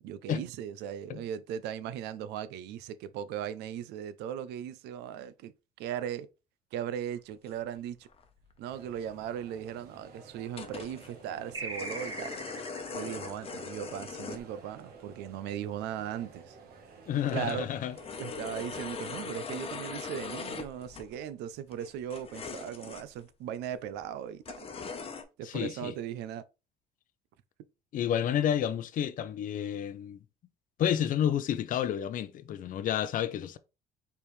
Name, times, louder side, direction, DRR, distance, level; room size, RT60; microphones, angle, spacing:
voice 1, 0.0-5.5 5.8-6.3 6.7-8.1 8.6-12.3 12.9-16.6 17.3-17.7 18.2-24.7 25.4-26.4, right 9 dB, 85° right, 0.5 m, -38 dB
sound 1, 7.5-7.6 8.0-8.2 8.5-8.6 8.8-8.9 9.4-9.5 10.5-11.1 11.5-14.4 14.8-14.9 16.2-16.3 16.7-16.8 17.1-21.2 21.7-23.2 23.7-23.8 24.4-25.2, left 5 dB, 35° left, 0.9 m, -41 dB
sound 2, 8.6-19.3, right 4 dB, 65° right, 1.3 m, -53 dB
sound 3, 11.5-14.6, right 2 dB, 25° right, 1.6 m, -41 dB
voice 2, 17.1-17.9 25.4-25.9 27.9-30.2 30.8-33.6, left 10 dB, 50° left, 0.5 m, -30 dB
4.4 x 3.4 x 3.2 m
cardioid pair, 110°, 17 cm